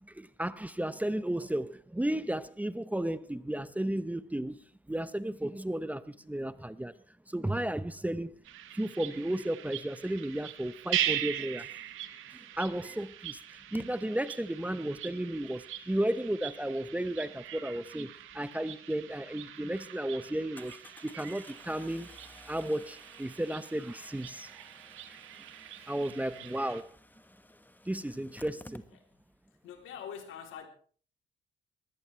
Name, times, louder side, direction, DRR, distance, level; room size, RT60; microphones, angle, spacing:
voice 1, 0.0-4.6 4.9-6.9 7.3-8.4 8.7-11.7 12.6-20.8 21.0-22.2 22.5-24.5 25.1-25.2 25.9-26.9 27.8-28.8, right 1 dB, 5° right, 0.8 m, -34 dB
sound 1, 8.4-26.8, right 12 dB, 90° right, 1.6 m, -41 dB
Engine starting, 12.2-12.3 13.7-13.9 18.9-19.0 19.4-19.5 20.6-29.4 29.6-29.7 29.9-30.0, left 1 dB, 10° left, 1.2 m, -54 dB
voice 2, 25.7-26.7 28.9-29.1 29.6-30.7, left 8 dB, 90° left, 3.5 m, -46 dB
22.0 x 16.5 x 3.4 m
cardioid pair, 90°, 20 cm